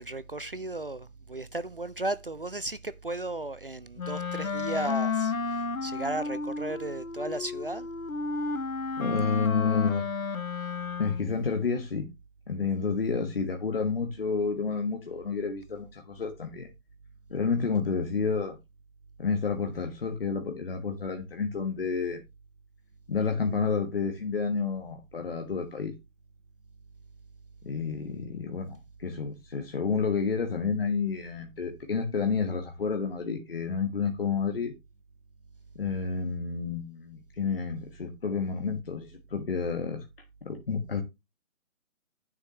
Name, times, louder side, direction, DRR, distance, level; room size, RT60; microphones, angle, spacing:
voice 1, 0.0-7.9, right 2 dB, 45° right, 0.4 m, -35 dB
Wind instrument woodwind instrument, 4.0-11.4, left 4 dB, 85° left, 1.0 m, -32 dB
voice 2, 9.0-10.0 11.0-12.1 12.5-16.7 17.3-18.6 19.2-22.2 23.1-25.9 27.6-34.7 35.7-40.0 40.4-41.0, left 5 dB, 45° left, 1.3 m, -30 dB
9.1 x 7.1 x 3.0 m
figure-of-eight pair, 150°, 41 cm